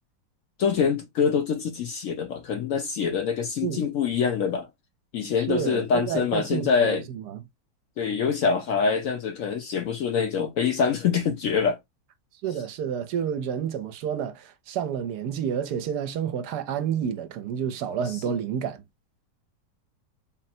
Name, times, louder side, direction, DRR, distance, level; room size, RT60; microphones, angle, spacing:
voice 1, 0.6-4.7 5.1-7.0 8.0-11.8 18.1-18.3, left 6 dB, 65° left, 0.8 m, -25 dB
voice 2, 5.4-7.4 12.4-18.8, right 8 dB, 75° right, 1.1 m, -29 dB
3.8 x 2.1 x 4.1 m
omnidirectional pair, 1.8 m